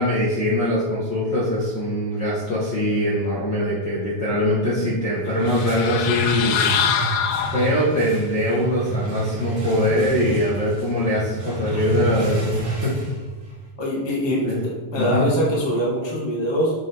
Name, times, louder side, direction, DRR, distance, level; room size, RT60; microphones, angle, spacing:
voice 1, 0.0-6.7 7.5-13.0 14.4-14.6 15.0-15.3, left 1 dB, 55° left, -6 dB, 1.2 m, -22 dB
sound 1, 5.0-13.7, right 4 dB, 50° right, 2.5 m, -30 dB
sound 2, 5.4-8.1, left 8 dB, 80° left, 1.6 m, -24 dB
voice 2, 13.8-16.7, equal, 20° left, -5 dB, 0.7 m, -23 dB
7.5 x 6.8 x 3.4 m, 1.3 s
omnidirectional pair, 3.9 m